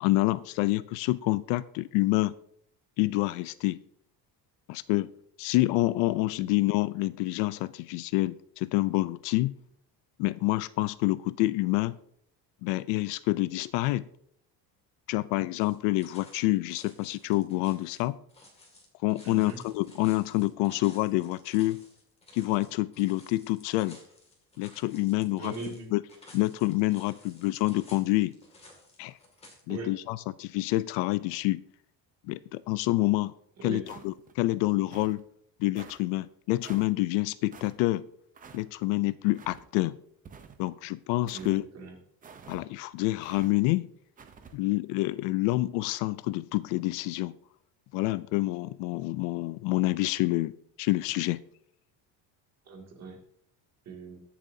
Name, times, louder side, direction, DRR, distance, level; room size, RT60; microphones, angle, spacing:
voice 1, 0.0-2.3 3.0-3.8 4.7-5.1 5.4-9.5 10.2-12.0 12.6-14.1 15.1-18.2 19.0-21.8 22.3-24.0 24.6-25.5 25.9-26.0 26.3-28.3 29.0-29.1 29.7-31.6 32.3-33.3 33.6-35.2 35.6-38.1 38.5-40.0 40.6-41.6 42.5-43.9 44.5-47.4 47.9-50.5 50.8-51.4, left 19 dB, 85° left, 0.5 m, -27 dB
sound 1, 15.6-29.6, left 2 dB, 15° left, 2.2 m, -55 dB
voice 2, 19.2-19.6 25.4-25.9 29.7-29.9 33.6-33.8 41.3-41.9 52.7-53.2 53.9-54.2, right 4 dB, 40° right, 2.3 m, -40 dB
sound 2, 33.8-34.3 34.9-35.2 35.8-36.0 36.6-36.9 37.5-37.7 38.3-38.6 39.3-39.6 40.2-40.7 41.3-41.6 42.2-42.6 43.2-43.5 44.2-44.5, right 6 dB, 20° right, 0.6 m, -48 dB
21.5 x 7.2 x 2.7 m
cardioid pair, 170°, 41 cm